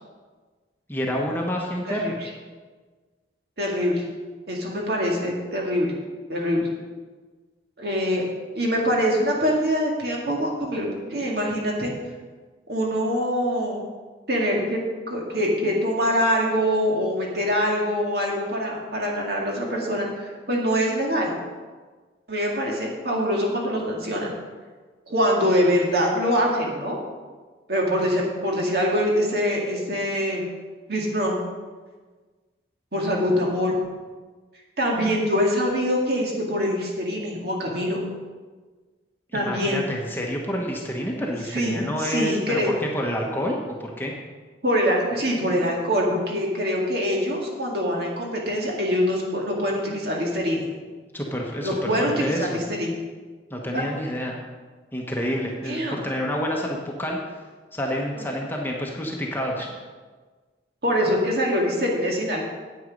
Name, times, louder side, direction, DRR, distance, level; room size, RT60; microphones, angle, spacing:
voice 1, 0.9-2.2 39.3-44.1 51.1-52.6 53.5-54.4 54.9-57.2 57.7-59.7, equal, 10° left, -1 dB, 1.1 m, -28 dB
voice 2, 1.8-2.3 3.6-4.0 4.5-5.9 6.3-6.7 7.8-8.2 8.5-11.9 12.7-13.8 14.3-14.8 15.1-21.4 22.3-24.3 25.1-27.0 27.7-30.5 30.9-31.4 32.9-33.8 34.8-38.0 39.3-39.8 41.5-42.7 44.6-50.6 51.6-52.9 53.7-53.8 55.7-56.0 58.2-58.3 60.8-62.4, equal, 55° right, -1 dB, 2.0 m, -24 dB
9.4 x 8.3 x 5.2 m, 1.4 s
head